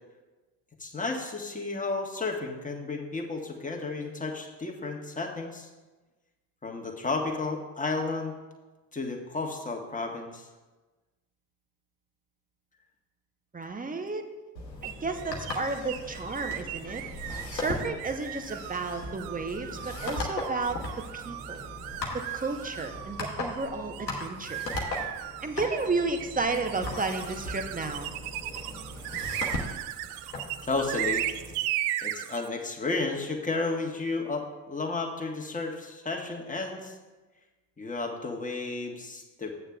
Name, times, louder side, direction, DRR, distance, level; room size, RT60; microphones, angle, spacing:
voice 1, 0.8-5.7 6.6-8.3 8.9-10.5 17.7-17.9 30.6-31.3 32.0-36.9 37.8-39.5, left 3 dB, 15° left, 1 dB, 1.5 m, -32 dB
voice 2, 13.5-14.3 14.8-17.0 17.5-21.7 22.1-24.6 25.4-28.1, right 3 dB, 15° right, 6 dB, 1.0 m, -32 dB
sound 1, 14.5-31.5, left 2 dB, 90° left, 1.0 m, -38 dB
sound 2, 14.8-32.5, right 13 dB, 65° right, 0.5 m, -37 dB
13.5 x 8.8 x 2.4 m, 1.2 s
figure-of-eight pair, 45°, 48 cm